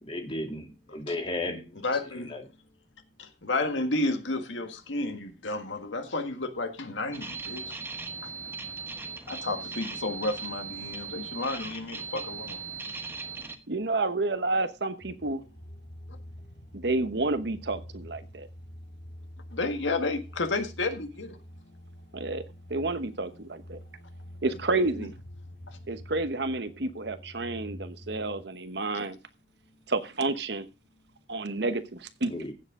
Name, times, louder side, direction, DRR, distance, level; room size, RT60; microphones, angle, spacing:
voice 1, 0.0-1.8 2.3-2.4 32.3-32.5, left 2 dB, 30° left, 2.2 m, -34 dB
voice 2, 1.8-2.3 3.2-7.8 9.3-12.6 19.5-21.4 24.5-24.6 25.0-25.1 25.7-25.8, left 2 dB, 90° left, 1.7 m, -31 dB
sound 1, 7.1-13.6, right 4 dB, 15° right, 1.2 m, -38 dB
voice 3, 13.7-15.4 16.7-18.5 22.1-22.4 22.7-23.8 24.4-25.1 25.9-29.2 29.9-30.7 31.3-32.3, right 2 dB, 65° right, 1.1 m, -30 dB
sound 2, 15.0-28.4, equal, 70° left, 4.1 m, -47 dB
15.5 x 7.5 x 3.7 m
head